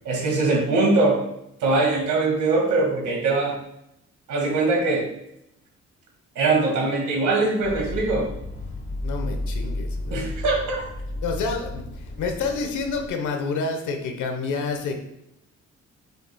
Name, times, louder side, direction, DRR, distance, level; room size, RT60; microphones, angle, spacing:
voice 1, 0.0-1.2 1.6-3.6 4.3-5.1 6.4-8.3 10.1-10.8, right 3 dB, 80° right, -1 dB, 2.0 m, -22 dB
sound 1, 7.6-13.1, left 1 dB, 40° left, 1.2 m, -32 dB
voice 2, 9.0-10.3 11.2-15.0, left 4 dB, 80° left, 4 dB, 1.1 m, -28 dB
7.7 x 5.4 x 2.3 m, 0.82 s
cardioid pair, 90°, 30 cm